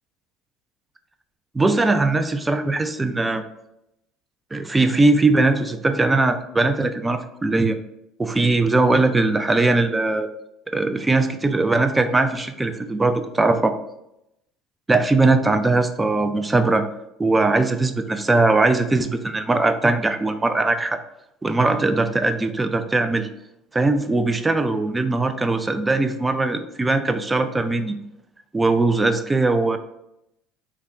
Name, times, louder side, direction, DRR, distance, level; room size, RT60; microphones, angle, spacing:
voice 1, 1.5-3.4 4.5-7.8 8.2-10.3 10.7-13.7 14.9-16.9 17.2-21.0 21.4-23.3 23.7-28.0 28.5-29.8, right 2 dB, 15° right, 9 dB, 0.3 m, -20 dB
3.4 x 2.1 x 3.5 m, 0.84 s
supercardioid pair, 95°, 0 cm